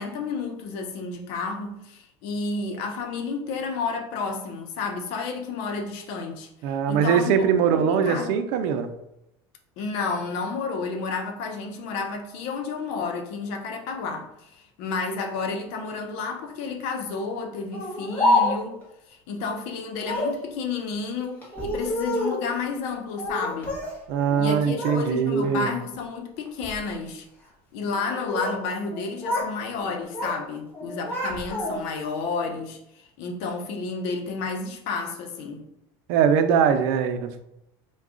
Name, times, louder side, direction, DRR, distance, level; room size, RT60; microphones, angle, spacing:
voice 1, 0.0-6.5 6.9-7.5 7.7-8.4 9.8-18.8 19.1-23.7 24.4-27.3 27.7-32.8 33.2-35.6, left 4 dB, 65° left, 0.8 m, -31 dB
voice 2, 6.6-8.9 24.1-25.7 36.1-37.4, right 7 dB, 75° right, 0.5 m, -22 dB
Speech, 17.7-18.8 20.0-20.4 21.4-22.5 23.2-24.0 24.3-25.0 25.4-25.8 26.5-26.8 27.9-28.6 28.9-29.5 29.8-30.4 30.7-32.0, left 1 dB, 15° left, 1.3 m, -27 dB
4.7 x 2.3 x 3.7 m
supercardioid pair, 130°, 11 cm